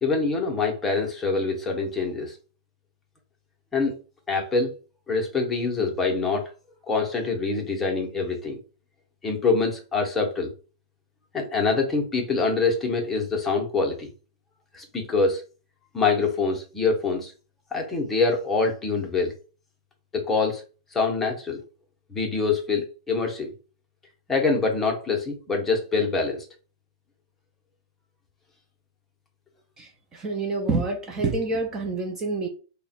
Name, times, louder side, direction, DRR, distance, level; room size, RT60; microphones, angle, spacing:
voice 1, 0.0-2.4 3.7-3.9 4.3-4.7 5.1-6.5 6.9-8.6 9.2-10.5 11.3-14.1 14.7-15.4 15.9-17.3 17.7-19.3 20.1-20.6 20.9-21.6 22.1-23.5 24.3-26.4, left 4 dB, 10° left, 2 dB, 0.7 m, -25 dB
voice 2, 29.8-32.5, right 3 dB, 20° right, 2 dB, 0.5 m, -27 dB
3.3 x 2.1 x 4.1 m, 0.36 s
supercardioid pair, 155°, 2 cm